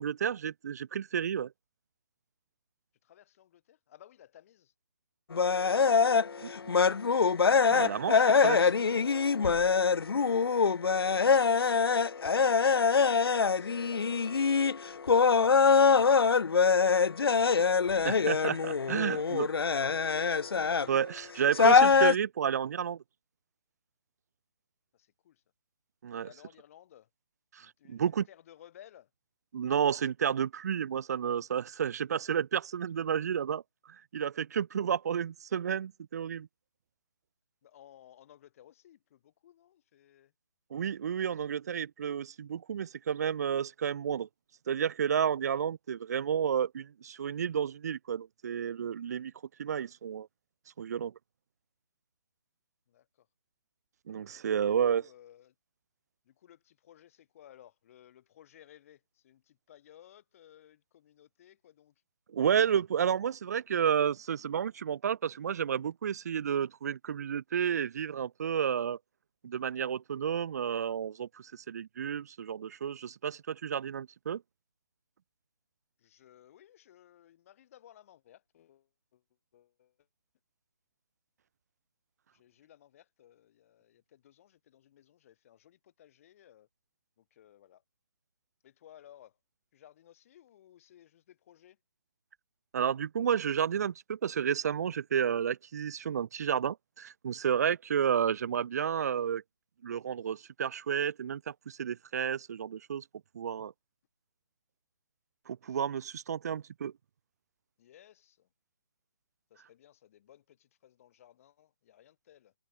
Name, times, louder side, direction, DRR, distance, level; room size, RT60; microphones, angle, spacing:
voice 1, 0.0-1.5 6.4-6.7 7.7-8.7 18.0-19.5 20.9-23.0 26.0-26.3 27.5-28.3 29.5-33.6 34.1-36.5 40.7-44.3 44.7-49.3 49.6-50.3 50.8-51.1 54.1-55.0 62.3-69.0 69.4-74.4 92.7-99.4 99.8-103.0 103.3-103.7 105.5-106.9, right 8 dB, 40° right, 0.5 m, -31 dB
voice 2, 3.0-4.7 11.1-18.0 24.9-25.4 26.2-27.1 27.6-29.1 37.6-40.3 52.9-53.3 54.5-55.5 56.2-61.9 76.0-79.2 79.5-80.1 82.3-86.7 87.2-87.8 88.6-89.4 89.7-91.8 107.8-108.5 109.5-112.5, left 11 dB, 35° left, 3.0 m, -58 dB
sound 1, 5.3-21.0 21.5-22.2, left 5 dB, 75° left, 0.5 m, -24 dB
figure-of-eight pair, 145°, 13 cm